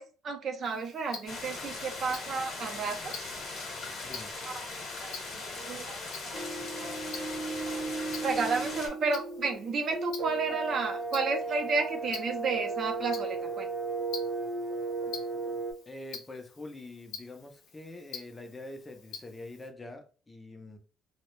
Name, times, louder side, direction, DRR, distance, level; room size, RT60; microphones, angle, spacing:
voice 1, 0.0-3.3 4.4-6.0 6.3-6.4 6.8-7.0 7.6-7.8 8.2-13.7, right 4 dB, 50° right, 0.5 m, -32 dB
Tick-tock, 0.6-19.7, left 5 dB, 90° left, 0.6 m, -49 dB
sound 1, 1.3-8.9, left 3 dB, 55° left, 0.9 m, -39 dB
sound 2, 6.3-15.7, right 3 dB, 90° right, 0.8 m, -35 dB
voice 2, 15.9-20.8, left 2 dB, 15° left, 0.4 m, -45 dB
2.2 x 2.0 x 2.9 m
cardioid pair, 105°, 0 cm